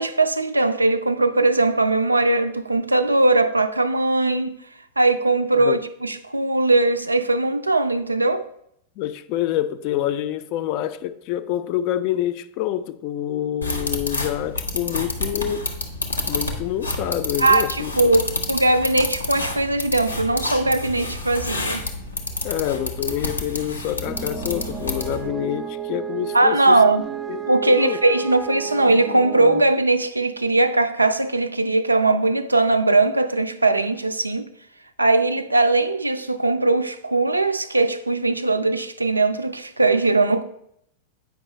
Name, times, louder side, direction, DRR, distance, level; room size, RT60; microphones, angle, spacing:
voice 1, 0.0-4.6 5.0-8.5 17.4-21.8 26.3-27.1 27.5-34.5 35.0-40.4, right 2 dB, 80° right, 0.4 m, -20 dB
voice 2, 9.0-15.7 16.2-18.1 22.4-26.8 27.3-28.0, left 12 dB, 45° left, 0.4 m, -27 dB
sound 1, 13.6-25.3, left 2 dB, 80° left, 0.8 m, -29 dB
sound 2, 24.0-29.6, right 8 dB, 20° right, 0.4 m, -32 dB
8.0 x 5.1 x 3.1 m
figure-of-eight pair, 90°, 0 cm